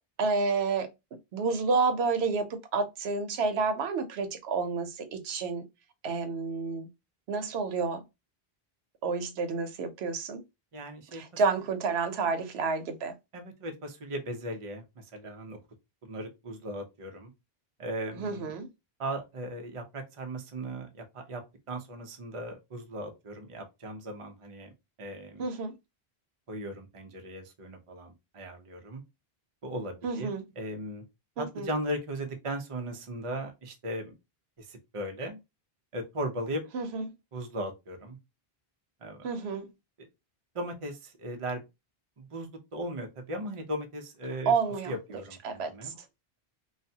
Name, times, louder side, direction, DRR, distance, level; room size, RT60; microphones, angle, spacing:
voice 1, 0.2-0.9 1.3-5.6 6.0-6.9 7.3-8.0 9.0-10.4 11.2-13.1 18.1-18.7 25.4-25.7 30.0-30.4 31.4-31.7 36.7-37.0 39.2-39.7 44.5-44.9 45.4-45.9, right 4 dB, 85° right, 0.9 m, -29 dB
voice 2, 10.7-11.4 13.3-15.6 16.0-17.3 17.8-18.5 19.0-21.4 21.7-24.7 25.0-25.4 26.5-29.0 29.6-31.0 31.4-34.1 34.6-35.4 35.9-36.6 37.3-38.2 39.0-39.3 40.0-40.1 40.5-41.6 42.2-44.5 44.9-45.9, right 1 dB, 40° right, 0.6 m, -37 dB
3.1 x 2.1 x 2.7 m
omnidirectional pair, 1.0 m